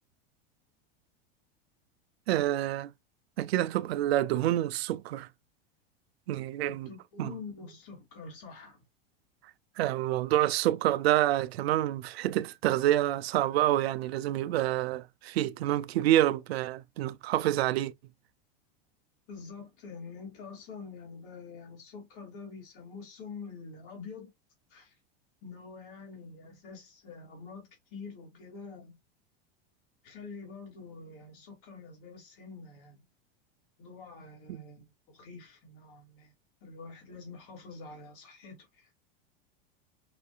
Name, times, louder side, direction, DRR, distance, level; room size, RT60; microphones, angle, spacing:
voice 1, 2.3-2.9 3.4-5.3 6.3-6.9 7.2-7.3 9.8-17.9, right 13 dB, 80° right, 0.6 m, -27 dB
voice 2, 6.7-8.8 19.3-24.3 24.7-24.9 25.4-29.0 30.0-33.0 33.8-36.3 36.6-38.9, left 4 dB, 60° left, 2.6 m, -46 dB
5.8 x 2.6 x 2.4 m
supercardioid pair, 115°, 30 cm